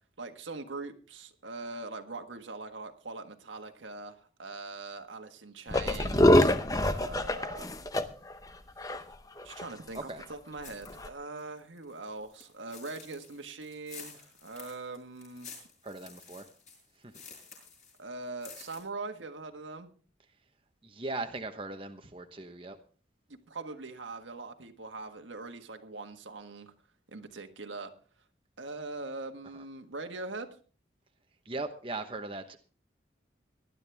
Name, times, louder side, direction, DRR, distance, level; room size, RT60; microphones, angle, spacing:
voice 1, 0.2-7.7 9.4-15.5 18.0-19.9 23.5-26.7 27.1-27.9 28.6-30.5, right 3 dB, 90° right, 6 dB, 1.7 m, -42 dB
sound 1, 5.7-8.0 8.3-8.4 8.8-9.0 9.4-9.7 10.2-10.3 10.9-11.1, left 1 dB, 20° left, 0.8 m, -25 dB
voice 2, 9.9-10.3 15.8-16.5 17.0-17.2 20.8-22.8 29.5-29.6 31.4-32.6, right 2 dB, 30° right, 6 dB, 1.0 m, -39 dB
sound 2, 10.6-11.1 11.4-18.0 18.3-18.8, left 5 dB, 40° left, 6.8 m, -50 dB
19.0 x 12.0 x 3.5 m, 0.39 s
head